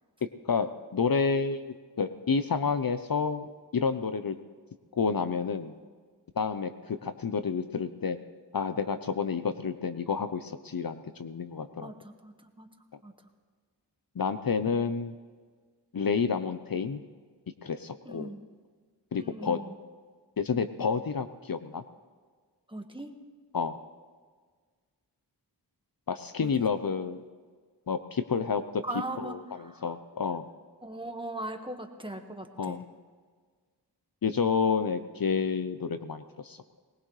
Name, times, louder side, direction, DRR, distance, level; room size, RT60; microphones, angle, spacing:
voice 1, 0.4-3.5 3.7-4.4 4.9-5.7 6.4-8.2 8.5-11.9 14.2-15.1 15.9-17.0 17.6-18.3 19.1-19.6 20.4-21.8 23.5-23.8 26.1-27.2 27.9-28.6 29.2-29.4 29.8-30.4 32.6-32.8 34.2-36.6, left 5 dB, 55° left, 10 dB, 0.8 m, -29 dB
voice 2, 11.8-12.7 13.0-13.1 18.1-18.4 19.1-19.7 22.7-23.1 26.4-26.5 28.8-29.9 30.8-32.8, right 1 dB, 10° right, 4 dB, 1.6 m, -39 dB
20.5 x 19.5 x 3.3 m, 1.5 s
cardioid pair, 50°, 42 cm